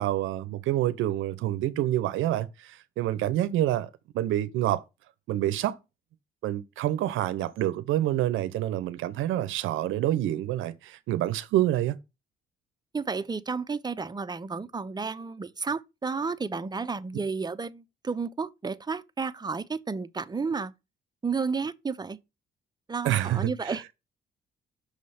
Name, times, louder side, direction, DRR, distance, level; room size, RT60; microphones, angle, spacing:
voice 1, 0.0-3.9 4.1-4.8 5.3-5.8 6.4-12.0 23.0-23.8, right 13 dB, 85° right, 0.6 m, -27 dB
voice 2, 12.9-20.7 21.2-22.2 22.9-23.9, right 4 dB, 20° right, 0.5 m, -32 dB
6.3 x 3.2 x 5.5 m
cardioid pair, 90°, 20 cm